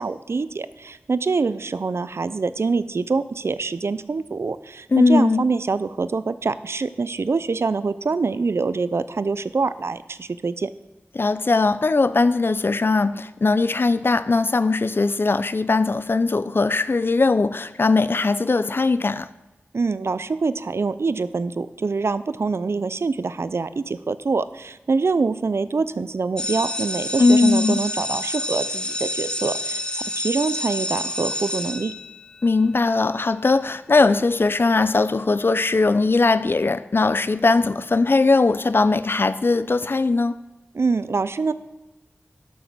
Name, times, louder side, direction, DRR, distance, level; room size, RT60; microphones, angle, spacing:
voice 1, 0.0-10.7 19.7-31.9 40.7-41.5, right 4 dB, 70° right, 0.5 m, -25 dB
voice 2, 4.9-5.4 11.1-19.3 27.2-27.8 32.4-40.4, left 3 dB, 55° left, 0.5 m, -19 dB
sound 1, 26.4-32.5, left 1 dB, 20° left, 1.0 m, -28 dB
12.0 x 6.4 x 6.1 m
wide cardioid pair, 60°, 5 cm